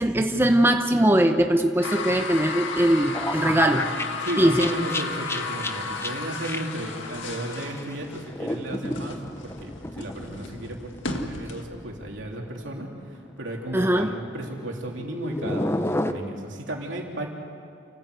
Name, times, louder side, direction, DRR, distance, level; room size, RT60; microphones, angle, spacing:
voice 1, 0.0-3.8 4.4-4.7 13.7-14.1, right 1 dB, 10° right, 5 dB, 0.9 m, -21 dB
sound 1, 1.8-11.7, left 3 dB, 85° left, 1.9 m, -34 dB
sound 2, 3.1-12.3 12.6-12.8 13.7-16.1, left 1 dB, 15° left, 0.8 m, -33 dB
voice 2, 3.4-17.3, right 1 dB, 75° right, 0 dB, 3.4 m, -35 dB
29.0 x 15.0 x 8.2 m, 2.4 s
head